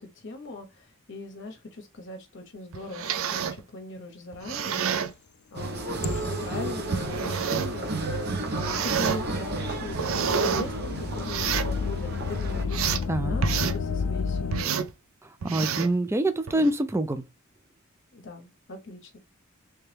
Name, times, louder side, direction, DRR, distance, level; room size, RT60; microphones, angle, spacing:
voice 1, 0.0-4.9 5.5-14.8 18.1-19.2, left 2 dB, 55° left, 0.8 m, -40 dB
sound 1, 2.7-3.6 4.3-5.1 6.0-6.2 6.9-7.8 8.5-9.2 9.7-10.7 11.2-11.7 12.3-13.1 13.4-13.8 14.5-14.9 15.4-16.0 16.5-16.7, right 7 dB, 70° right, 0.5 m, -29 dB
sound 2, 5.5-12.6, right 2 dB, 50° right, 0.9 m, -32 dB
sound 3, 6.0-14.6, left 5 dB, 90° left, 0.4 m, -33 dB
voice 2, 13.1-13.4 15.2-17.3, right 1 dB, 10° right, 0.3 m, -26 dB
3.3 x 3.0 x 3.3 m
head